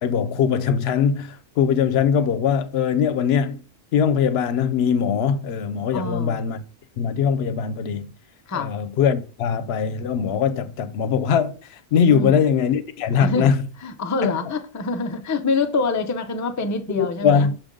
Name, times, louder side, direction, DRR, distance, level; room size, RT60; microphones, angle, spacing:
voice 1, 0.0-3.6 3.9-6.6 7.0-8.1 8.5-13.6 14.2-14.4 16.9-17.6, left 7 dB, 80° left, 0.8 m, -21 dB
voice 2, 5.9-6.4 8.5-8.7 12.1-12.3 13.2-13.5 13.8-17.5, left 3 dB, 25° left, 0.4 m, -25 dB
6.0 x 5.2 x 3.7 m
omnidirectional pair, 1.1 m